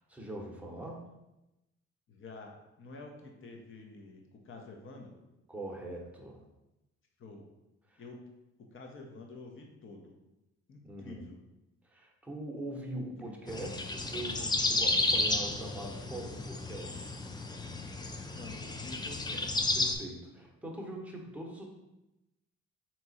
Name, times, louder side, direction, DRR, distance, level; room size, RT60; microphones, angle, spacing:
voice 1, 0.1-1.0 5.5-6.4 7.9-8.0 10.8-11.3 11.8-17.0 19.7-21.7, right 1 dB, 5° right, -1 dB, 0.9 m, -42 dB
voice 2, 2.1-5.2 7.2-7.5 8.0-8.2 8.6-10.2 10.7-11.4 13.3-13.4 18.3-19.7, left 3 dB, 45° left, 2 dB, 0.8 m, -49 dB
sound 1, 13.5-20.0, left 2 dB, 15° left, 0.4 m, -32 dB
3.6 x 3.0 x 4.1 m, 0.96 s
cardioid pair, 90°, 30 cm